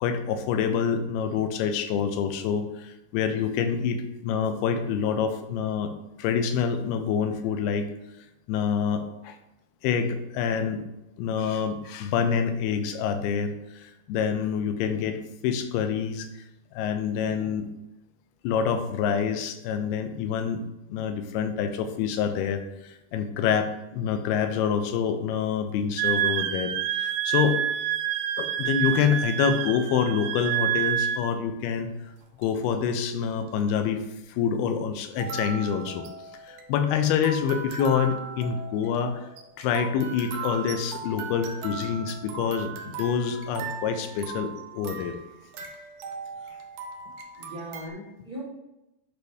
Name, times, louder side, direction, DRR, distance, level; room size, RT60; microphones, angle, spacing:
voice 1, 0.0-5.9 6.2-7.9 8.5-9.4 9.8-10.8 11.2-15.2 15.4-16.3 16.7-17.7 18.4-20.6 20.9-22.6 23.1-27.6 28.4-31.9 32.4-34.0 34.4-36.0 36.5-39.2 39.6-45.1, left 7 dB, 80° left, 8 dB, 2.5 m, -26 dB
voice 2, 17.1-17.5 47.3-48.4, equal, 35° right, -9 dB, 1.6 m, -40 dB
Wind instrument woodwind instrument, 26.0-31.3, right 11 dB, 90° right, 2.7 m, -27 dB
sound 1, 32.2-32.7 33.5-33.6 35.1-47.9, right 5 dB, 75° right, 2.2 m, -39 dB
10.5 x 5.2 x 2.7 m, 0.93 s
omnidirectional pair, 4.7 m